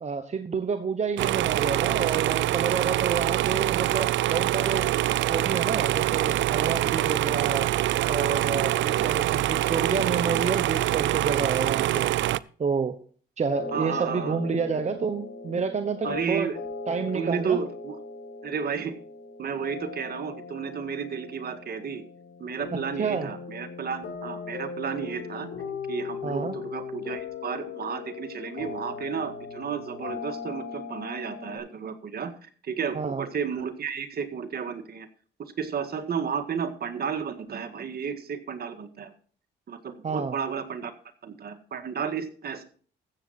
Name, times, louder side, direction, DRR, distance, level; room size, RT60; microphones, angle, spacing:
voice 1, 0.0-4.9 5.3-7.7 8.1-12.1 12.6-13.0 13.4-16.5 16.9-17.6 23.0-23.3 26.2-26.5 32.9-33.2 40.0-40.3, right 5 dB, 35° right, 7 dB, 1.1 m, -29 dB
sound 1, 1.2-12.4, right 14 dB, 70° right, 0.4 m, -25 dB
sound 2, 13.4-31.6, left 5 dB, 70° left, 4.9 m, -38 dB
voice 2, 13.7-14.4 16.0-16.6 17.1-18.0 18.4-19.0 19.4-22.0 22.4-25.5 25.9-35.1 35.4-39.1 39.7-40.9 41.2-42.6, right 7 dB, 50° right, 7 dB, 1.8 m, -32 dB
14.0 x 7.7 x 4.2 m, 0.43 s
cardioid pair, 90°, 20 cm